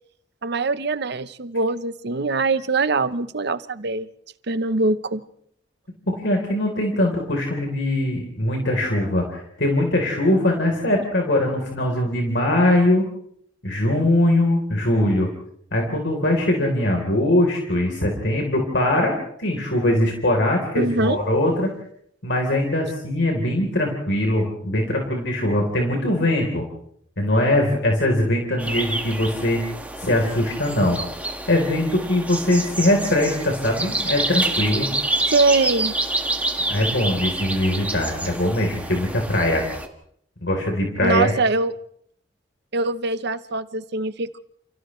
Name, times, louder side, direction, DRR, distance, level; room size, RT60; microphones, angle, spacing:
voice 1, 0.4-4.1 4.5-5.2 20.7-21.2 35.3-36.0 41.0-41.7 42.7-44.4, right 3 dB, 65° right, 13 dB, 0.9 m, -23 dB
voice 2, 6.2-13.1 13.6-15.3 15.7-21.7 22.2-26.6 27.2-29.6 30.0-31.0 31.5-34.9 36.7-39.7 40.4-41.3, left 1 dB, 70° left, 1 dB, 3.8 m, -21 dB
sound 1, 28.6-39.9, right 2 dB, 10° right, 1.8 m, -28 dB
29.5 x 29.5 x 3.2 m, 0.67 s
head